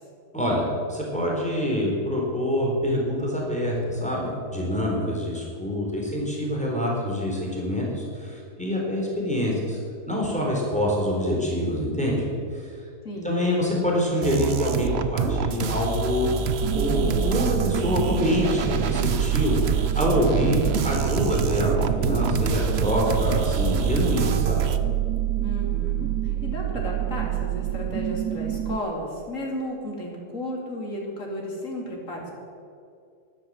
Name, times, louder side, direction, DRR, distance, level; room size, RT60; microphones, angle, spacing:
voice 1, 0.3-9.8 10.1-12.3 12.5-12.9 13.2-16.3 16.7-24.6, left 1 dB, 5° left, -3 dB, 3.6 m, -25 dB
voice 2, 13.0-13.4 25.4-32.3, left 1 dB, 50° left, -2 dB, 3.5 m, -33 dB
sound 1, 14.2-24.8, right 6 dB, 50° right, 0.8 m, -27 dB
sound 2, 16.6-28.8, right 14 dB, 90° right, 1.3 m, -27 dB
12.5 x 12.0 x 7.5 m, 2.4 s
omnidirectional pair, 1.8 m